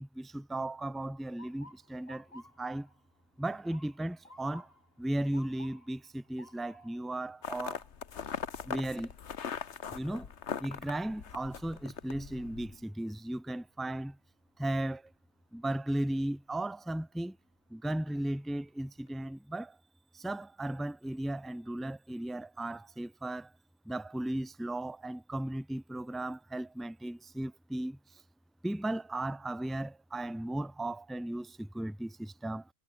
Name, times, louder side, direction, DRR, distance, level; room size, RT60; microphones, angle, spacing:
voice 1, 0.0-2.9 3.4-4.7 5.0-7.9 8.6-9.1 9.9-10.3 10.6-14.2 14.6-15.1 15.5-17.4 17.7-19.8 20.1-23.5 23.8-28.2 28.6-32.7, right 1 dB, ahead, 1.0 m, -36 dB
Motor vehicle (road) / Siren, 1.4-13.3 13.7-14.2 15.0-15.3 17.1-17.4 17.9-18.0 18.4-19.1, left 1 dB, 55° left, 6.4 m, -59 dB
sound 1, 7.4-12.7, left 7 dB, 75° left, 1.5 m, -40 dB
omnidirectional pair, 1.2 m